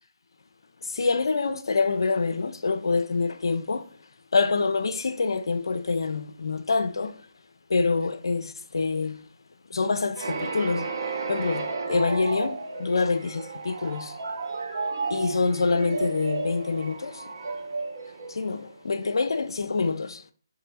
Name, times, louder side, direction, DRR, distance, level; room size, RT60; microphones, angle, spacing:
voice 1, 0.8-3.9 4.3-7.2 7.7-9.2 9.7-10.9 11.3-14.2 15.1-17.2 18.3-20.2, left 4 dB, 65° left, 0.4 m, -26 dB
sound 1, 10.2-18.9, right 4 dB, 50° right, 0.7 m, -33 dB
3.8 x 2.7 x 4.0 m
figure-of-eight pair, 155°, 3 cm